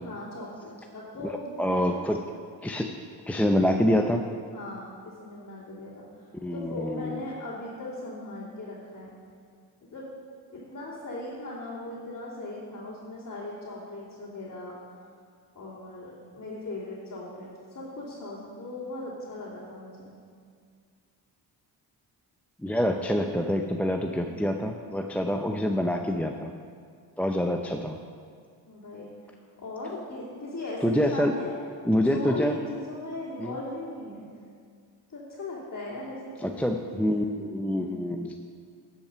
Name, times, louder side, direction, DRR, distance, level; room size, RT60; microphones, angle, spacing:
voice 1, 0.0-2.0 4.5-6.0 6.5-9.1 9.9-10.1 10.5-14.7 15.5-20.1 24.1-24.4 28.7-29.1 29.6-31.5 32.1-34.2 35.1-36.6 36.9-37.3 37.6-38.2, left 2 dB, 40° left, -9 dB, 2.9 m, -38 dB
voice 2, 1.6-2.2 2.6-2.9 3.3-4.2 6.3-7.2 22.6-26.5 27.2-28.0 30.8-31.3 31.8-32.6 33.4-33.5 36.4-38.4, equal, 5° left, 4 dB, 0.5 m, -26 dB
10.5 x 5.8 x 6.7 m, 2.1 s
cardioid pair, 70°, 45 cm